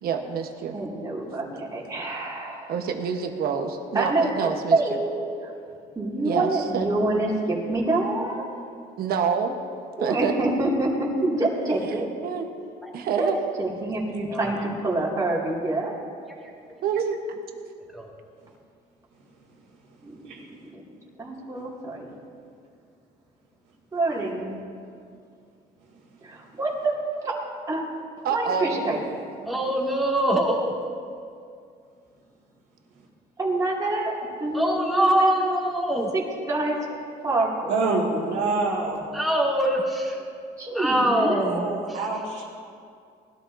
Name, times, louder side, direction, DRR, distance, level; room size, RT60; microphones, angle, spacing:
voice 1, 0.0-0.8 2.7-4.8 6.2-6.9 9.0-9.6 10.0-10.3 12.2-12.5 12.9-13.4 16.8-17.4 28.2-28.8, right 6 dB, 65° right, 5 dB, 1.2 m, -27 dB
voice 2, 0.7-2.7 3.9-5.3 6.0-8.5 10.0-12.1 13.2-13.3 13.6-15.9 20.0-20.7 21.2-22.1 23.9-24.6 26.2-27.4 27.7-27.9 28.3-29.0 33.4-35.4 36.1-36.9 37.2-37.7 40.6-41.4, right 2 dB, 20° right, -5 dB, 2.6 m, -26 dB
voice 3, 14.3-14.7 16.4-16.5 17.9-18.1 29.5-30.8 34.5-36.1 38.7-40.2 40.7-42.0, right 1 dB, ahead, -3 dB, 2.3 m, -24 dB
voice 4, 28.6-29.0 37.7-39.1 41.4-42.5, right 3 dB, 90° right, -9 dB, 2.3 m, -27 dB
19.5 x 12.5 x 2.7 m, 2.3 s
cardioid pair, 110°, 17 cm